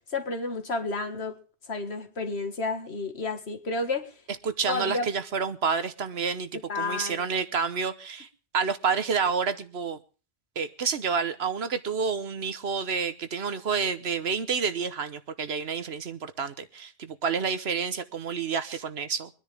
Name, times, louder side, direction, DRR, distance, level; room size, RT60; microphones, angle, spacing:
voice 1, 0.1-1.4 1.7-4.1 4.7-5.1 6.7-7.3, left 3 dB, 70° left, 6 dB, 2.0 m, -31 dB
voice 2, 4.4-8.3 8.5-10.0 10.5-19.3, right 5 dB, 70° right, 12 dB, 1.3 m, -29 dB
25.0 x 10.0 x 3.4 m, 0.37 s
omnidirectional pair, 1.1 m